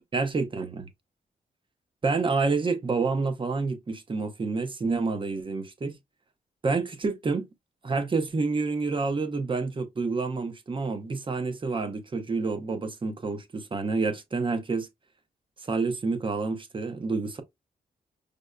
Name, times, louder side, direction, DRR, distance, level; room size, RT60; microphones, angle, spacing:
voice 1, 0.1-0.9 2.0-6.0 6.6-7.5 7.8-14.9 15.6-17.4, right 4 dB, 35° right, 0.7 m, -28 dB
5.1 x 2.0 x 2.2 m
cardioid pair, 95°, 16 cm